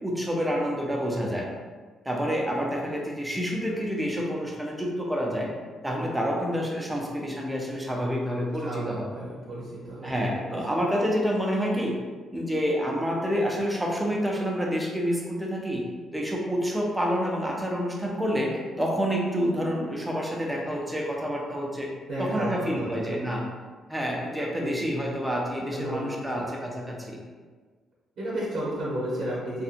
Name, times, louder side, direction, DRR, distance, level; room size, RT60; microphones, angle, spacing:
voice 1, 0.0-1.5 2.1-5.5 5.8-9.1 10.0-11.9 12.3-15.8 16.1-21.9 22.2-23.4 23.9-27.2, equal, 10° right, -1 dB, 0.6 m, -28 dB
voice 2, 8.6-10.1 10.4-10.6 22.1-23.2 24.6-24.8 25.7-26.5 28.2-29.6, right 1 dB, 65° right, -7 dB, 0.9 m, -33 dB
2.7 x 2.5 x 2.5 m, 1.5 s
cardioid pair, 90°, 0 cm